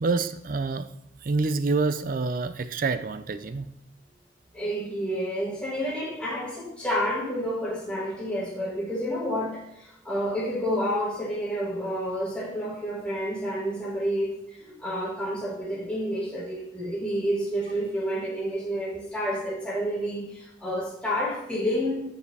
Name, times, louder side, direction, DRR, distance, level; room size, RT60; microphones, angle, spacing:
voice 1, 0.0-0.9 1.2-3.7, right 3 dB, 50° right, 12 dB, 0.4 m, -27 dB
voice 2, 4.5-22.0, equal, 5° left, -7 dB, 1.7 m, -29 dB
9.4 x 5.1 x 3.3 m, 0.77 s
head